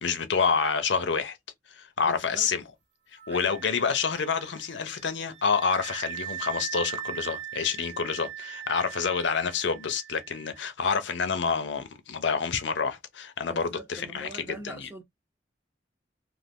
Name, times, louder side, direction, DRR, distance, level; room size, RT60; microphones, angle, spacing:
voice 1, 0.0-1.4 1.7-2.7 3.1-14.9, left 5 dB, 85° left, 0.6 m, -28 dB
voice 2, 2.1-2.5 3.3-3.5 13.5-15.0, right 1 dB, 10° right, 0.8 m, -43 dB
Wind instrument woodwind instrument, 3.2-10.6, right 10 dB, 70° right, 1.0 m, -40 dB
2.5 x 2.4 x 3.4 m
head